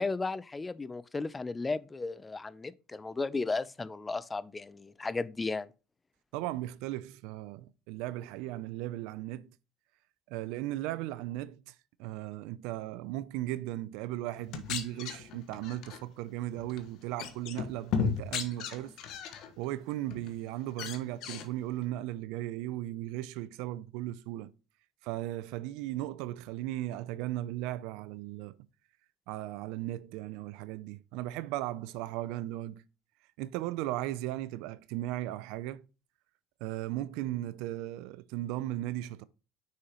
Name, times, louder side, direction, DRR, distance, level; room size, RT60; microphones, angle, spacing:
voice 1, 0.0-5.7, left 3 dB, 20° left, 0.5 m, -34 dB
voice 2, 6.3-9.5 10.3-11.7 12.0-18.9 19.6-24.5 25.0-28.6 29.3-32.8 33.4-35.8 36.6-39.2, right 15 dB, 75° right, 0.5 m, -36 dB
sound 1, 14.4-16.0 16.6-16.9 17.2-19.5 19.9-20.3 20.7-21.5, left 6 dB, 65° left, 1.3 m, -35 dB
6.4 x 5.6 x 3.0 m
supercardioid pair, 85°, 0 cm